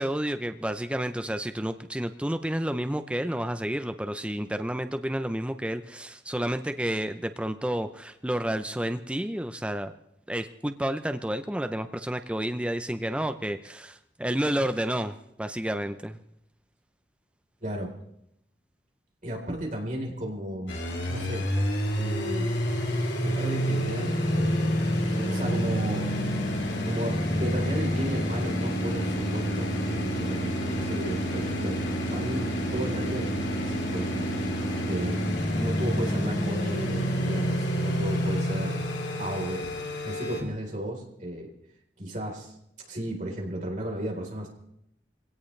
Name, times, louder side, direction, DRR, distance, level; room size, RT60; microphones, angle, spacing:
voice 1, 0.0-9.9 10.3-16.2, right 1 dB, 5° right, 8 dB, 0.6 m, -30 dB
voice 2, 17.6-17.9 19.2-21.5 22.0-22.5 23.2-26.1 26.5-34.3 34.9-35.2 35.5-38.9 39.2-39.7 40.0-41.5 42.0-42.5 42.9-44.5, right 1 dB, 45° right, 0 dB, 4.0 m, -34 dB
sound 1, 20.7-40.4, equal, 85° left, 3.6 m, -28 dB
23.5 x 17.0 x 3.3 m, 0.78 s
head